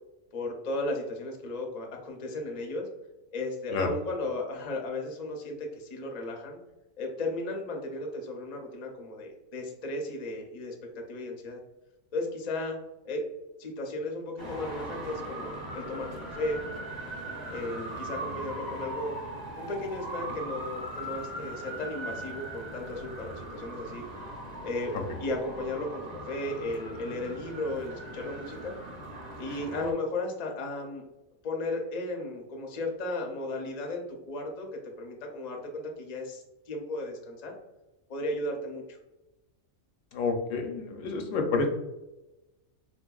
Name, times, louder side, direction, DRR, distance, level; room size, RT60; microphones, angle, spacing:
voice 1, 0.3-2.9 3.3-6.6 7.0-11.6 12.1-12.8 13.0-13.2 13.6-16.6 17.5-19.2 19.6-24.0 24.6-24.9 25.2-28.7 29.4-31.0 31.4-37.6 38.1-39.0, left 2 dB, 50° left, 1 dB, 0.5 m, -35 dB
Traffic noise roadway noise, 14.4-29.9, right 1 dB, 40° right, 0.7 m, -40 dB
voice 2, 40.1-41.7, left 4 dB, 80° left, 4 dB, 1.0 m, -29 dB
4.0 x 2.5 x 2.2 m, 1.0 s
omnidirectional pair, 1.4 m